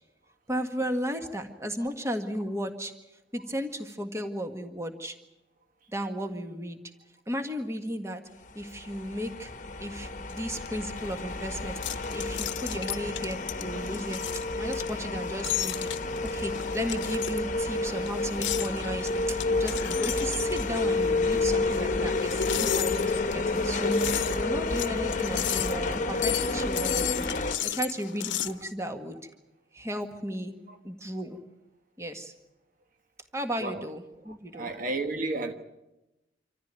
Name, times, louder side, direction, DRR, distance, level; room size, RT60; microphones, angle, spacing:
voice 1, 0.5-2.9 3.3-5.2 5.9-6.8 7.3-8.2 8.6-9.5 9.8-15.9 16.3-23.9 24.4-29.3 29.7-30.5 30.8-31.4 32.0-32.3 33.3-34.7, equal, 15° right, 1.7 m, -35 dB
sound 1, 8.6-27.6, left 2 dB, 45° left, 1.2 m, -30 dB
sound 2, 10.3-28.6, left 12 dB, 90° left, 0.8 m, -35 dB
voice 2, 34.5-35.5, right 2 dB, 50° right, 1.3 m, -32 dB
26.0 x 14.5 x 9.1 m
head